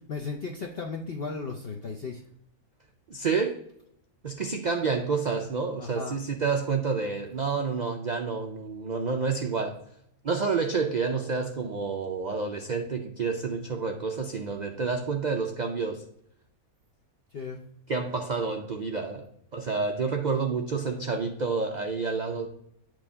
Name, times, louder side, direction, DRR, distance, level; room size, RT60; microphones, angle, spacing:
voice 1, 0.1-2.3 5.8-6.3 14.7-15.0 17.3-17.6, left 4 dB, 50° left, 1 dB, 0.8 m, -36 dB
voice 2, 3.1-3.6 4.2-9.8 10.2-16.1 17.9-22.5, right 4 dB, 85° right, 4 dB, 0.3 m, -29 dB
8.8 x 3.2 x 5.5 m, 0.74 s
omnidirectional pair, 1.6 m